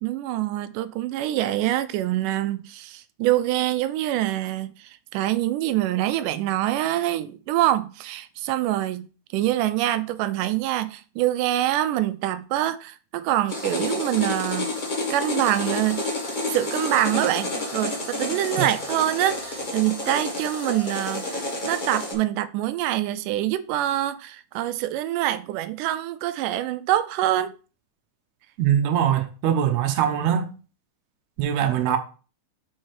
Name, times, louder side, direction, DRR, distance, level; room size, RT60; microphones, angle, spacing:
voice 1, 0.0-9.1 9.3-14.7 15.1-16.1 16.5-27.5, right 14 dB, 90° right, 2.1 m, -25 dB
sound 1, 13.5-22.1, left 2 dB, 75° left, 0.4 m, -29 dB
voice 2, 28.6-30.5 31.4-32.0, right 9 dB, 75° right, 1.9 m, -22 dB
5.3 x 4.7 x 4.6 m
omnidirectional pair, 3.6 m